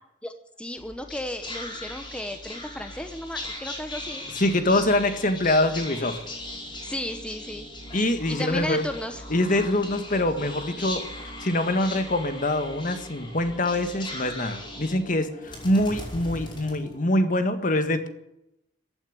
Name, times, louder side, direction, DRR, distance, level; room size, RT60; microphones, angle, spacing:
voice 1, 0.2-4.3 6.8-7.7 8.3-9.2, left 1 dB, 5° left, 7 dB, 1.0 m, -34 dB
Whispering, 0.8-17.4, left 1 dB, 25° left, 5.3 m, -39 dB
voice 2, 4.3-6.2 7.9-8.9 9.3-18.1, left 1 dB, 45° left, 9 dB, 1.7 m, -24 dB
15.5 x 8.9 x 9.8 m, 0.82 s
head